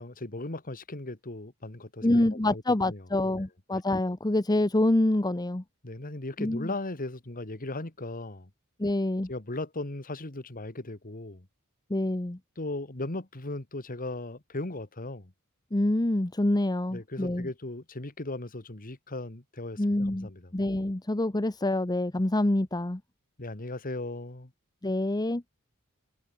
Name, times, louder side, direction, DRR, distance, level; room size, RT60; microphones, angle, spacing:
voice 1, 0.0-3.0 3.3-3.4 5.8-8.5 9.3-11.5 12.6-15.3 16.9-20.5 23.4-24.5, left 2 dB, 40° left, 2.0 m, -37 dB
voice 2, 2.0-5.6 6.4-6.7 8.8-9.3 11.9-12.4 15.7-17.5 19.8-23.0 24.8-25.4, left 1 dB, 20° left, 0.9 m, -26 dB
head